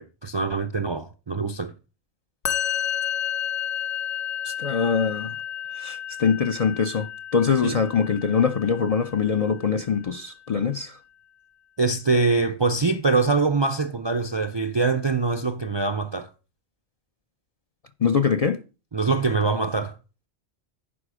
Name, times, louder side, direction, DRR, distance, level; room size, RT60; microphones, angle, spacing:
voice 1, 0.0-1.7 7.6-7.8 11.8-16.3 18.9-20.0, right 4 dB, 40° right, 0.4 m, -24 dB
Musical instrument, 2.4-9.7, left 10 dB, 80° left, 1.3 m, -31 dB
voice 2, 4.4-5.3 5.7-11.0 18.0-18.6, left 6 dB, 50° left, 0.5 m, -23 dB
11.0 x 4.9 x 4.9 m
omnidirectional pair, 1.2 m